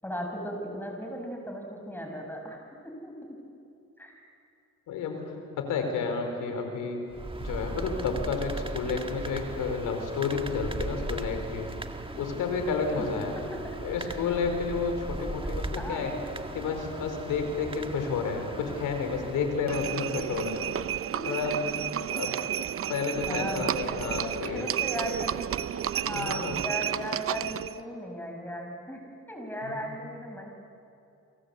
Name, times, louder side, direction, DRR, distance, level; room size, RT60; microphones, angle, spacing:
voice 1, 0.0-3.1 4.0-4.1 13.0-13.1 13.6-14.2 15.4-16.3 20.7-20.8 21.1-21.2 23.3-24.1 24.5-25.6 25.9-29.0 29.3-30.5, equal, 5° left, 2 dB, 6.5 m, -37 dB
voice 2, 4.9-7.0 7.4-11.7 12.2-13.3 13.8-16.1 16.5-20.6 21.3-21.6 22.1-22.4 22.9-24.7 26.1-26.6 29.7-29.9, left 5 dB, 85° left, 5 dB, 4.6 m, -31 dB
sound 1, 7.1-20.1, right 2 dB, 15° right, 1.9 m, -38 dB
Livestock farm animals working animals, 19.7-27.8, right 10 dB, 50° right, 0.7 m, -32 dB
29.0 x 24.0 x 8.4 m, 2.6 s
cardioid pair, 90°, 30 cm